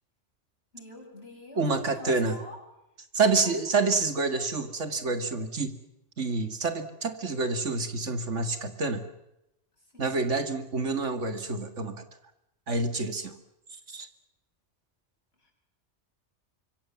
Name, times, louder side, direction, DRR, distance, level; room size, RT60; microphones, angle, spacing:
voice 1, 0.7-2.6 3.4-3.7 3.9-4.2 9.8-10.1 15.4-15.5, left 1 dB, 60° left, 1 dB, 7.4 m, -46 dB
voice 2, 1.6-2.4 3.1-5.7 6.2-9.0 10.0-11.9 12.7-13.3 13.9-14.1, right 3 dB, 85° right, 9 dB, 2.4 m, -28 dB
26.0 x 23.5 x 7.3 m, 0.86 s
omnidirectional pair, 1.2 m